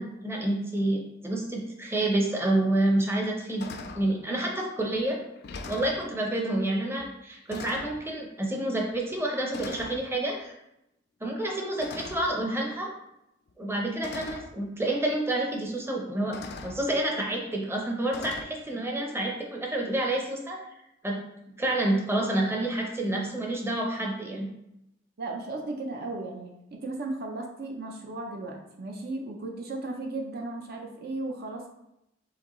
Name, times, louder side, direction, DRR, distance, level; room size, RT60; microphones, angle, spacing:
voice 1, 0.0-3.7 3.9-5.2 5.7-10.5 11.2-12.9 13.6-16.4 16.6-20.6 21.0-21.2 21.6-24.5, right 1 dB, 15° right, -1 dB, 0.7 m, -28 dB
sound 1, 2.5-2.6 3.1-3.3 3.6-4.1 4.9-5.0 5.4-6.0 7.0-7.2 7.5-8.0 8.9-9.2 9.5-10.0 11.8-12.4 13.5-13.6 14.0-14.5 15.7-15.8 16.3-16.8 18.1-18.4, left 4 dB, 60° left, 0.4 m, -41 dB
voice 2, 25.2-31.7, right 2 dB, 55° right, 1 dB, 0.6 m, -35 dB
4.9 x 3.4 x 3.0 m, 0.85 s
head